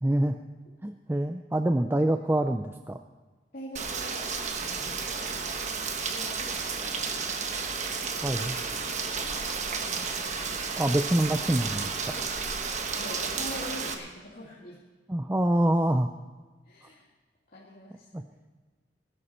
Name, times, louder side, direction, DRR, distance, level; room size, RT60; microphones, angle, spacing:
voice 1, 0.0-0.4 0.8-3.0 8.2-8.5 10.8-12.3 15.1-16.1 18.1-18.2, right 1 dB, 10° right, 7 dB, 0.4 m, -26 dB
voice 2, 3.5-5.6 5.9-7.1 8.4-9.2 13.0-14.8 16.6-17.1 17.5-18.4, left 1 dB, 55° left, -7 dB, 2.3 m, -44 dB
Rain, 3.8-13.9, right 5 dB, 40° right, 1.2 m, -32 dB
20.5 x 11.5 x 4.3 m, 1.3 s
head